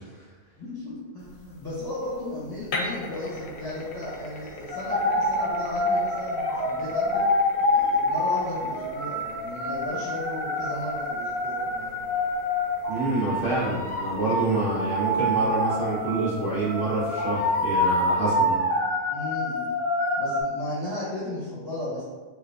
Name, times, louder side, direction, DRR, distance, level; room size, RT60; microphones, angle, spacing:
voice 1, 0.6-7.3 7.7-12.0 19.1-19.7 20.2-22.0, left 1 dB, 20° left, -10 dB, 0.8 m, -35 dB
sound 1, 1.2-18.1, left 2 dB, 65° left, 0.7 m, -42 dB
sound 2, 4.7-20.4, left 1 dB, 70° right, 1.3 m, -26 dB
voice 2, 12.9-18.6, right 2 dB, 40° right, -11 dB, 1.5 m, -27 dB
3.7 x 2.4 x 2.5 m, 1.3 s
omnidirectional pair, 1.4 m